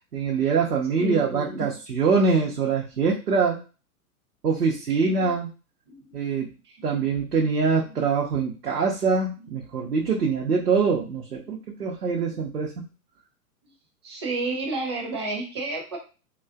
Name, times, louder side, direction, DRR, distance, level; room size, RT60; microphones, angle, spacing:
voice 1, 0.1-3.6 4.4-5.5 6.1-6.5 6.8-12.8, right 5 dB, 80° right, -2 dB, 0.7 m, -24 dB
voice 2, 1.0-1.7 5.9-6.0 11.4-11.5 14.0-16.0, right 3 dB, 20° right, 1 dB, 0.4 m, -30 dB
3.6 x 2.3 x 2.4 m, 0.33 s
figure-of-eight pair, 105°, 46 cm